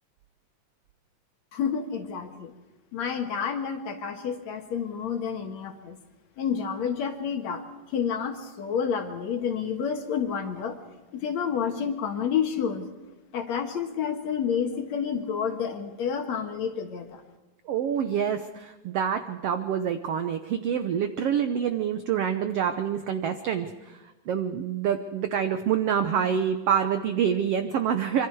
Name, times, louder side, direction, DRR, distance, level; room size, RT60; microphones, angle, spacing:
voice 1, 1.5-2.5 2.9-6.0 6.4-7.6 7.9-10.8 11.1-12.9 13.3-17.2, left 7 dB, 60° left, 5 dB, 2.5 m, -29 dB
voice 2, 17.7-24.0 24.3-28.3, right 8 dB, 80° right, 8 dB, 1.3 m, -26 dB
26.0 x 24.0 x 4.7 m, 1.1 s
omnidirectional pair, 3.9 m